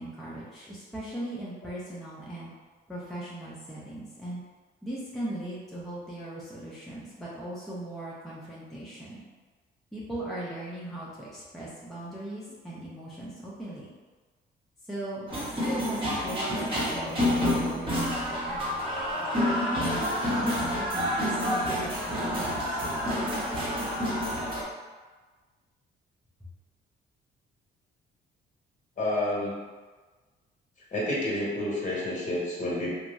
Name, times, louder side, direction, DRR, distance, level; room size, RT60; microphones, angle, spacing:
voice 1, 0.0-2.5 2.9-4.4 4.8-9.2 9.9-13.9 14.8-18.6 19.6-20.1 20.4-23.3, right 1 dB, ahead, -8 dB, 0.6 m, -38 dB
sound 1, 15.3-24.6, equal, 25° right, 0.9 m, -28 dB
voice 2, 29.0-29.6 30.9-33.0, left 1 dB, 40° left, -6 dB, 1.2 m, -29 dB
2.8 x 2.0 x 3.5 m, 1.4 s
cardioid pair, 90°, 20 cm